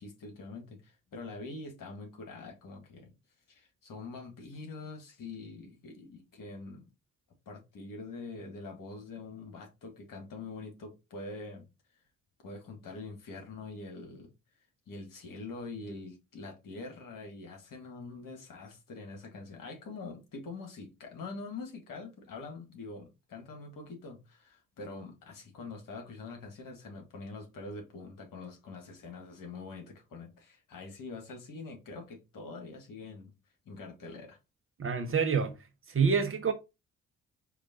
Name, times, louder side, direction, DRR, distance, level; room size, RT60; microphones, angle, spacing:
voice 1, 0.0-3.1 3.5-6.9 7.4-11.7 12.4-14.3 14.9-33.3 33.6-34.4, left 3 dB, 55° left, 1.7 m, -44 dB
voice 2, 34.8-35.5 35.9-36.5, right 6 dB, 35° right, 1.0 m, -27 dB
4.7 x 2.5 x 4.0 m
figure-of-eight pair, 40°, 39 cm